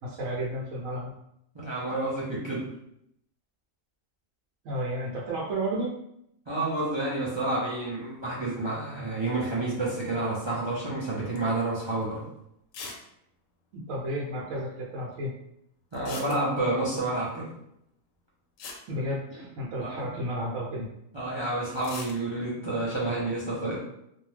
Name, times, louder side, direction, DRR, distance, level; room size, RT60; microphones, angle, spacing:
voice 1, 0.0-1.1 4.6-5.9 13.7-15.3 18.9-20.9, right 1 dB, 80° right, -5 dB, 1.0 m, -32 dB
voice 2, 1.5-2.6 6.5-12.2 15.9-17.5 19.8-20.1 21.1-23.8, right 2 dB, 45° right, -7 dB, 0.3 m, -29 dB
sound 1, 11.4-11.6 12.0-12.1 12.7-13.1 13.3-13.4 13.6-13.7 15.9-16.8 18.2-18.3 18.6-19.8 21.7-22.2, left 4 dB, 80° left, 1.0 m, -41 dB
2.6 x 2.1 x 3.2 m, 0.76 s
omnidirectional pair, 1.4 m